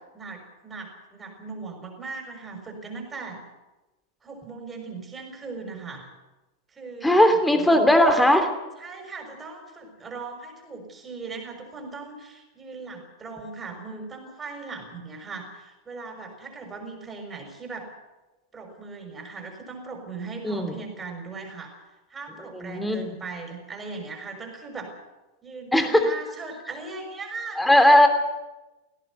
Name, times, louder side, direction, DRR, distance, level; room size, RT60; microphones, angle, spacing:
voice 1, 0.1-3.4 4.2-6.1 6.8-7.9 8.8-17.9 18.5-21.7 22.1-24.9 25.4-28.1, right 4 dB, 15° right, 3 dB, 6.0 m, -39 dB
voice 2, 7.0-8.5 20.4-20.8 22.5-23.1 25.7-26.1 27.6-28.1, left 1 dB, 5° left, 7 dB, 2.9 m, -18 dB
18.0 x 17.5 x 9.6 m, 1.1 s
figure-of-eight pair, 90°, 0 cm